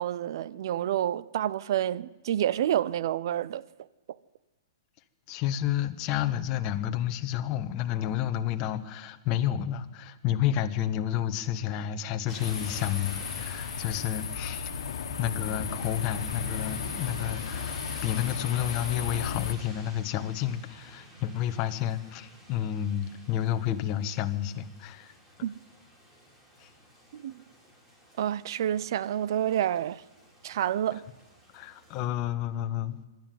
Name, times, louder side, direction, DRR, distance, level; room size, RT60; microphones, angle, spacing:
voice 1, 0.0-3.6 25.4-25.5 27.1-27.4 28.2-30.0 30.4-31.0, right 11 dB, 60° right, 0.7 m, -28 dB
voice 2, 5.3-14.8 15.2-25.1 26.6-26.7 31.5-33.1, left 11 dB, 30° left, 1.3 m, -30 dB
sound 1, 12.3-32.0, right 1 dB, 15° right, 6.2 m, -47 dB
sound 2, 12.4-19.5, left 7 dB, 75° left, 1.7 m, -35 dB
23.0 x 12.5 x 9.4 m
hypercardioid pair, 145°, 2 cm